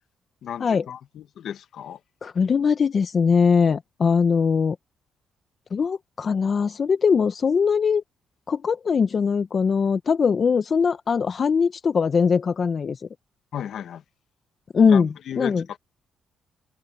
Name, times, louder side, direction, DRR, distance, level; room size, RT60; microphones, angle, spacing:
voice 1, 0.4-2.0 13.5-14.0 14.9-15.8, left 9 dB, 70° left, 1.4 m, -34 dB
voice 2, 2.2-4.8 5.7-8.0 8.5-13.0 14.7-15.1 15.4-15.6, left 6 dB, 45° left, 0.7 m, -21 dB
open air
cardioid pair, 90°, 0 cm